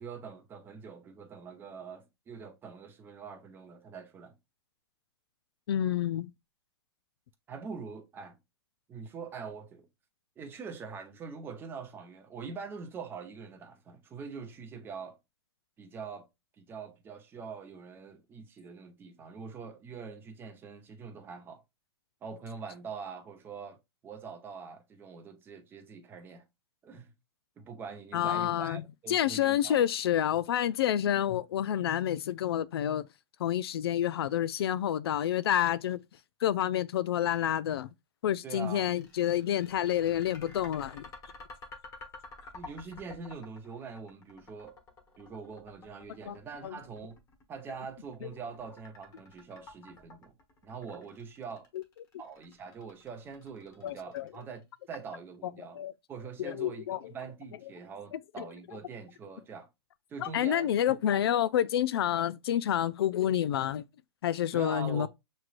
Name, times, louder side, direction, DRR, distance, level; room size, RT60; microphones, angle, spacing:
voice 1, 0.0-4.4 7.5-8.4 8.9-9.9 10.4-15.2 15.8-16.3 16.6-21.6 22.2-23.8 24.0-26.4 26.8-27.1 27.6-29.9 38.4-39.0 42.5-44.8 45.2-47.2 47.5-50.3 50.6-51.7 52.2-55.8 56.1-59.7 60.1-61.0 64.5-65.1, right 5 dB, 15° right, 0.7 m, -44 dB
voice 2, 5.7-6.3 28.1-28.8 29.1-33.1 33.4-36.0 36.4-37.9 38.2-41.0 46.3-46.4 46.6-46.7 51.7-51.8 53.8-54.3 55.7-55.9 56.4-57.0 58.1-58.4 60.2-63.8 64.2-65.1, left 11 dB, 65° left, 0.4 m, -28 dB
sound 1, 38.5-54.6, left 3 dB, 20° left, 1.2 m, -51 dB
6.0 x 3.2 x 2.4 m
hypercardioid pair, 145°, 14 cm